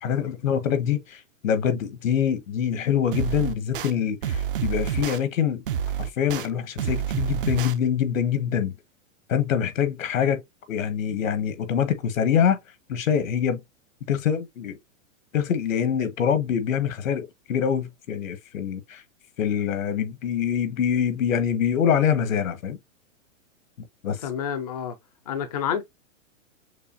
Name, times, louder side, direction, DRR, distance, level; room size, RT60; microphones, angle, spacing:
voice 1, 0.0-5.6 6.0-8.7 9.3-10.4 10.7-12.6 12.9-13.6 14.1-14.8 15.3-19.0 19.4-22.8 23.8-24.2, left 8 dB, 75° left, 1.3 m, -25 dB
sound 1, 3.1-3.9 4.2-5.2 5.7-6.5 6.8-7.7, right 8 dB, 45° right, 0.5 m, -28 dB
voice 2, 24.2-24.9 25.3-25.8, left 8 dB, 30° left, 0.4 m, -28 dB
6.7 x 2.4 x 2.6 m
supercardioid pair, 170°, 40 cm